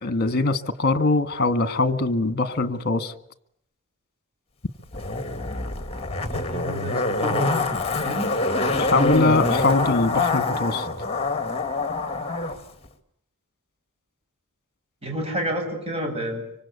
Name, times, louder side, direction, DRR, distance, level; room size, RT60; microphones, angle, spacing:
voice 1, 0.0-3.1 8.7-10.9, left 3 dB, 45° left, 11 dB, 1.7 m, -22 dB
Zipper (clothing), 4.9-12.6 12.8-12.9, left 3 dB, 25° left, 2.2 m, -25 dB
voice 2, 6.3-7.7 8.0-8.3 15.0-16.4, equal, 30° right, 3 dB, 8.0 m, -29 dB
25.5 x 25.0 x 8.4 m, 0.71 s
head